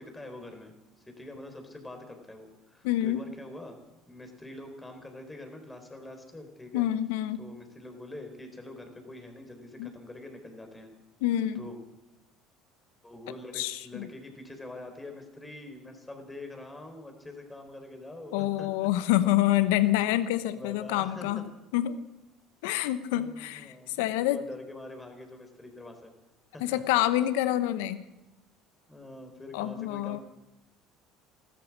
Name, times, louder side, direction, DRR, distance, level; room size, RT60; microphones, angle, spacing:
voice 1, 0.0-3.8 4.1-6.9 7.4-10.9 11.5-11.8 13.0-18.9 20.5-21.4 23.1-26.1 26.5-26.8 28.9-30.2, left 2 dB, 15° left, 5 dB, 4.0 m, -45 dB
voice 2, 2.8-3.2 6.7-7.4 9.8-9.9 11.2-11.7 13.5-14.1 18.3-21.4 21.7-22.0 22.6-24.4 26.6-28.0 29.5-30.2, left 14 dB, 80° left, 14 dB, 0.9 m, -27 dB
15.0 x 13.0 x 7.4 m, 0.96 s
supercardioid pair, 85°, 0 cm